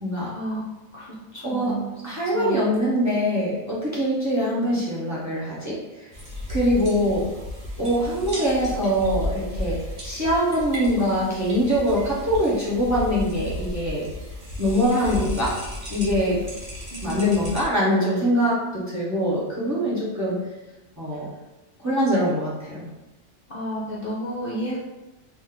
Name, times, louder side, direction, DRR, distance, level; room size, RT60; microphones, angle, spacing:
voice 1, 0.0-0.3 1.4-5.8 6.5-7.3 7.8-14.1 14.6-15.6 15.9-16.4 17.0-20.4 21.0-21.3 21.8-22.9, equal, 15° right, -8 dB, 1.0 m, -23 dB
voice 2, 0.9-1.9 2.3-2.6 4.7-4.8 16.9-17.2 23.5-24.8, right 1 dB, 50° left, -6 dB, 0.9 m, -31 dB
sound 1, 6.1-17.6, left 1 dB, 40° right, 1.4 m, -34 dB
4.1 x 2.7 x 3.8 m, 1.1 s
omnidirectional pair, 1.4 m